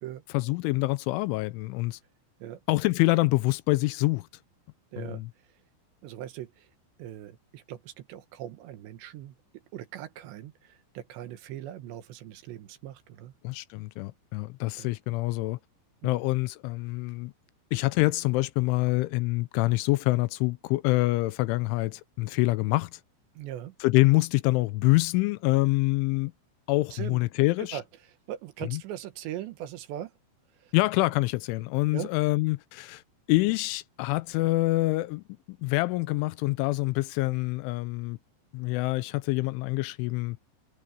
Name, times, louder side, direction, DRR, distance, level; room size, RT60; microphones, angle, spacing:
voice 1, 0.3-2.0 2.7-4.3 5.0-5.3 13.4-15.6 16.0-17.3 17.7-23.0 23.8-26.3 26.7-27.8 28.7-28.8 30.7-33.0 33.3-38.2 38.5-40.4, left 21 dB, 85° left, 3.0 m, -26 dB
voice 2, 4.9-5.2 6.0-6.7 7.0-9.4 9.7-13.3 14.8-14.9 16.0-16.2 23.4-23.8 26.9-27.2 27.6-30.1 30.6-30.7 31.9-32.1, right 11 dB, 70° right, 3.2 m, -40 dB
omnidirectional pair, 5.7 m